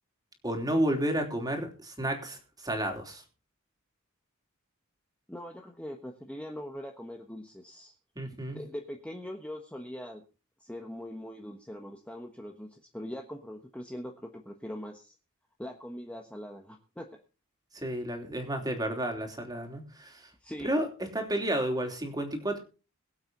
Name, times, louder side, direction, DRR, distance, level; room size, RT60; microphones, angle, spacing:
voice 1, 0.4-3.2 8.2-8.6 17.7-20.3 20.6-22.6, right 1 dB, 20° right, 3.2 m, -31 dB
voice 2, 5.3-7.9 8.5-10.2 10.6-15.1 15.6-17.1 20.4-20.7, equal, 5° left, 1.2 m, -42 dB
22.5 x 7.9 x 3.9 m
head